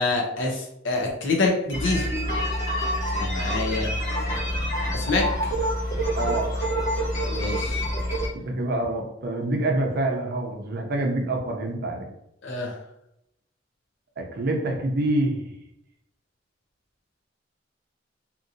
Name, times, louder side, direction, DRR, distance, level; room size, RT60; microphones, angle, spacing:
voice 1, 0.0-2.1 3.1-4.6 4.9-5.5 7.3-7.8 12.4-12.8, left 3 dB, 70° left, 0 dB, 0.7 m, -27 dB
sound 1, 1.7-8.3, equal, 40° left, 1.3 m, -27 dB
voice 2, 6.1-6.5 8.4-12.1 14.2-15.5, right 1 dB, 55° right, 1 dB, 0.6 m, -26 dB
2.8 x 2.7 x 2.6 m, 0.81 s
head